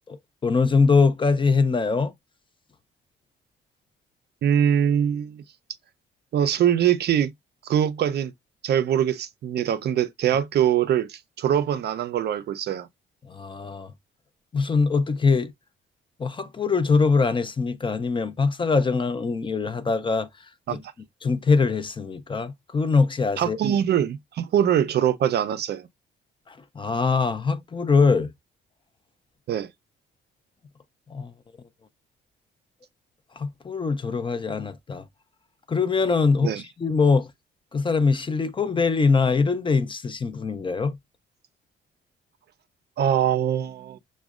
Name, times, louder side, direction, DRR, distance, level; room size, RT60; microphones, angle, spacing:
voice 1, 0.1-2.1 13.3-13.9 14.5-15.5 16.2-20.3 21.2-23.6 26.5-28.3 31.1-31.3 33.4-35.0 35.7-36.5 36.8-37.3 37.7-41.0, left 4 dB, 25° left, 0.4 m, -22 dB
voice 2, 4.4-5.4 6.3-7.3 7.6-8.3 8.6-12.9 20.7-20.8 23.4-25.9 29.5-29.7 36.4-36.6 43.0-44.0, right 9 dB, 55° right, 0.4 m, -23 dB
6.0 x 2.1 x 2.3 m
cardioid pair, 90°, 20 cm